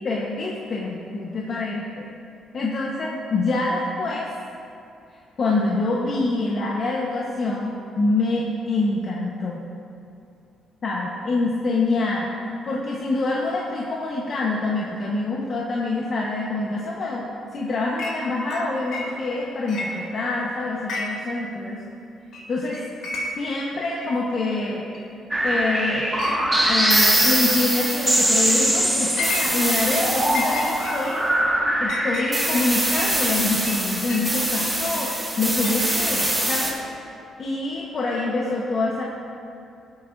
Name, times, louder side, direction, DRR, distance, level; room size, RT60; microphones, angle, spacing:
voice 1, 0.0-2.1 2.5-4.3 5.4-9.6 10.8-21.8 22.5-22.8 23.4-24.9 25.4-26.1 26.7-31.2 31.8-35.1 35.4-36.8 37.4-39.0, left 2 dB, 50° left, -4 dB, 1.2 m, -26 dB
Chink clink, 18.0-18.2 18.5-19.4 19.7-20.4 20.8-21.4 21.6-21.7 22.3-22.5 22.7-23.5 24.0-24.1 24.9-25.0 25.5-25.8 26.2-26.4 26.8-27.3 27.7-28.0 28.5-30.0 30.3-34.3 34.9-36.4, left 3 dB, 80° left, 2.3 m, -33 dB
sound 1, 25.3-36.7, right 1 dB, 15° right, 1.9 m, -22 dB
17.5 x 8.4 x 2.7 m, 2.6 s
cardioid pair, 90°, 0 cm